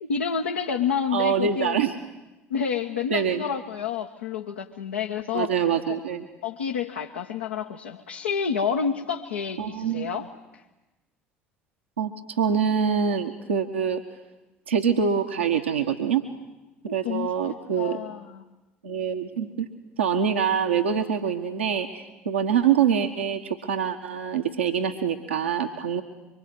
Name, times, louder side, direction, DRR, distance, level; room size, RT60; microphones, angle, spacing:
voice 1, 0.0-1.8 2.5-5.5 5.9-6.0 6.4-10.3 16.8-17.3 17.8-18.4, left 6 dB, 80° left, 1 dB, 1.3 m, -29 dB
voice 2, 1.1-1.9 3.1-3.4 5.3-6.2 9.6-10.1 12.0-14.0 14.7-16.2 16.9-18.0 18.8-19.7 20.0-26.0, right 7 dB, 80° right, 3 dB, 1.4 m, -25 dB
25.0 x 24.0 x 9.5 m, 1.1 s
figure-of-eight pair, 60°, 6 cm